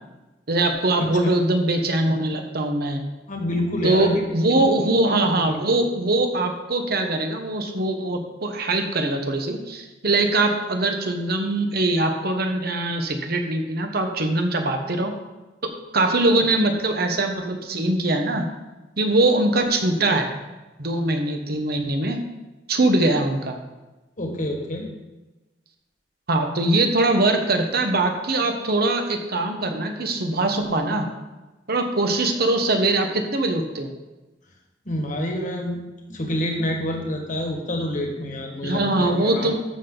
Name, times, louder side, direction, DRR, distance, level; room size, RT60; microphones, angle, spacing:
voice 1, 0.5-3.0 3.8-15.1 15.6-18.5 19.0-20.3 20.8-22.2 22.7-23.6 26.3-31.1 31.7-33.9 38.6-39.5, right 2 dB, 55° right, 5 dB, 1.2 m, -22 dB
voice 2, 1.0-1.3 3.3-4.2 4.5-4.7 5.4-5.6 24.2-24.9 34.8-39.5, left 1 dB, 45° left, 2 dB, 1.6 m, -28 dB
13.5 x 6.2 x 3.9 m, 1.1 s
head